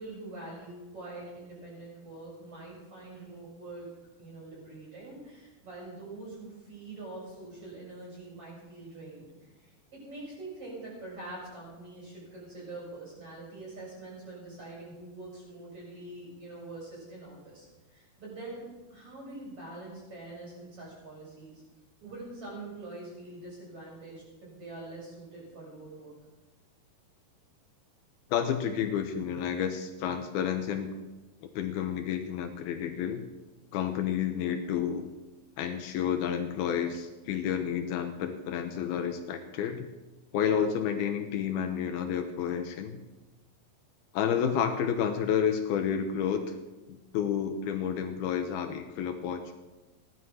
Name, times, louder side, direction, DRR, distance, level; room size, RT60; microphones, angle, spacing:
voice 1, 0.0-3.9 4.2-21.6 22.0-26.1 47.2-47.5, right 2 dB, 35° right, -4 dB, 8.0 m, -44 dB
voice 2, 28.3-31.0 31.4-33.3 33.7-35.1 35.6-39.9 40.3-43.0 44.1-46.5 46.9-49.5, left 8 dB, 75° left, 6 dB, 2.8 m, -30 dB
17.0 x 11.5 x 6.3 m, 1.1 s
omnidirectional pair, 4.7 m